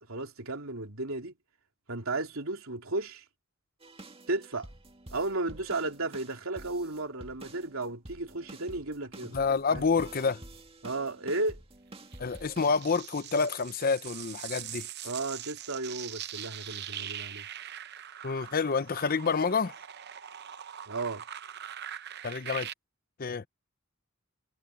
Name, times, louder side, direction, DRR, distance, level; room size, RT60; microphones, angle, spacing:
voice 1, 0.1-1.3 1.9-3.2 4.3-4.7 5.1-9.4 9.7-9.8 10.8-11.6 15.0-17.4 20.9-21.2, right 2 dB, 85° right, 3.2 m, -34 dB
sound 1, 3.8-12.8, right 1 dB, 30° right, 2.1 m, -49 dB
voice 2, 9.3-10.4 12.2-14.9 18.2-19.7 22.2-22.7 23.2-23.5, left 5 dB, 45° left, 0.6 m, -28 dB
sound 2, 12.1-22.7, right 10 dB, 55° right, 0.8 m, -42 dB
head